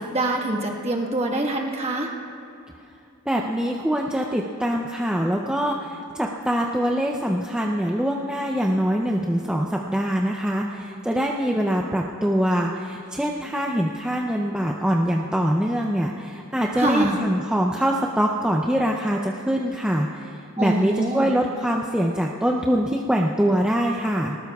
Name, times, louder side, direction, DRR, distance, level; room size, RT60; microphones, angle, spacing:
voice 1, 0.0-2.1 16.7-17.2 20.6-21.3, right 1 dB, 30° right, 1 dB, 1.4 m, -25 dB
voice 2, 3.3-24.4, equal, 5° right, -1 dB, 0.5 m, -24 dB
19.5 x 19.0 x 2.3 m, 2.5 s
head